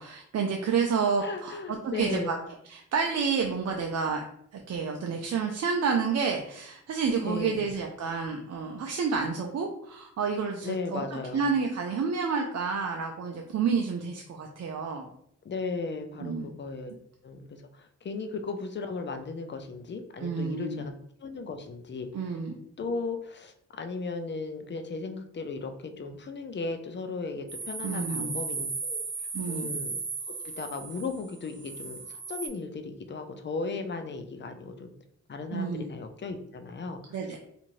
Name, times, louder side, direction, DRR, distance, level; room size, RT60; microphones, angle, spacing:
voice 1, 0.0-1.6 1.9-2.4 2.7-4.2 4.5-11.0 11.3-15.1 16.2-16.5 20.2-20.8 22.1-22.5 27.8-28.3 29.3-29.7 35.5-35.9 37.1-37.4, right 5 dB, 55° right, 2 dB, 0.5 m, -29 dB
voice 2, 1.2-2.4 7.3-7.6 10.6-11.5 15.4-16.9 17.2-20.9 21.2-22.3 22.8-29.0 29.5-30.0 30.3-34.9 35.3-37.2, left 4 dB, 35° left, 6 dB, 0.5 m, -36 dB
sound 1, 27.5-32.5, right 4 dB, 35° right, 0.8 m, -36 dB
2.6 x 2.5 x 3.0 m, 0.69 s
cardioid pair, 60°, 31 cm